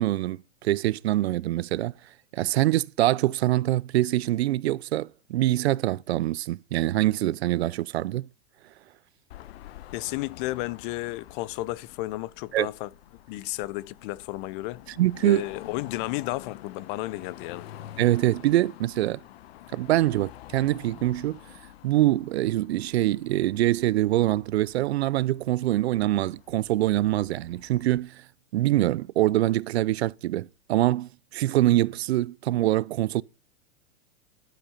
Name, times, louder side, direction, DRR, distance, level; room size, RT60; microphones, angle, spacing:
voice 1, 0.0-1.9 2.3-8.3 12.5-12.7 15.0-15.4 18.0-19.2 19.7-21.4 21.8-28.2 28.5-33.2, right 15 dB, 75° right, 0.6 m, -24 dB
Car passing by / Traffic noise roadway noise / Engine, 9.3-28.0, left 13 dB, 70° left, 1.2 m, -48 dB
voice 2, 9.9-12.9 13.3-14.8 15.2-17.7, left 18 dB, 55° left, 0.9 m, -33 dB
11.5 x 8.5 x 5.7 m
hypercardioid pair, 115°, 32 cm